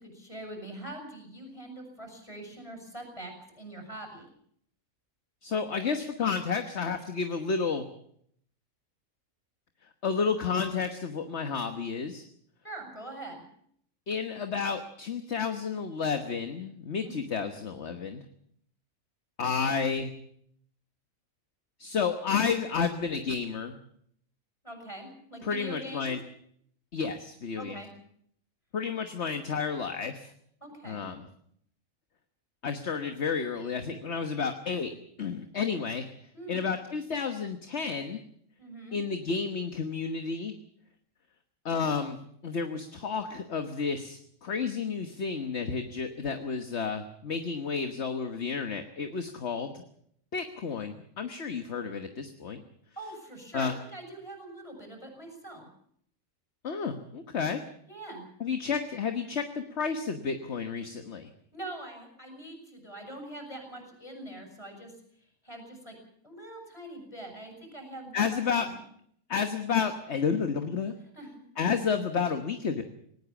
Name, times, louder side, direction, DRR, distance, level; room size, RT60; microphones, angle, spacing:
voice 1, 0.0-4.3 12.6-13.4 17.0-17.2 24.6-26.1 27.6-27.9 30.6-31.1 36.3-36.7 38.6-39.0 53.0-55.7 57.9-58.3 61.5-64.9 65.4-65.9 66.2-68.8 71.1-71.5, right 1 dB, 20° left, 3 dB, 7.0 m, -43 dB
voice 2, 5.4-7.8 10.0-12.2 14.1-18.2 19.4-20.1 21.8-23.8 25.4-26.2 26.9-27.8 28.7-30.3 30.8-31.3 32.6-34.9 35.2-36.0 36.5-38.2 38.9-40.5 41.6-49.8 50.3-52.6 53.5-53.7 56.6-57.6 58.4-61.3 68.1-68.7 69.3-70.9 71.6-72.8, left 5 dB, 55° left, 7 dB, 1.5 m, -31 dB
19.5 x 19.0 x 7.1 m, 0.67 s
omnidirectional pair, 1.5 m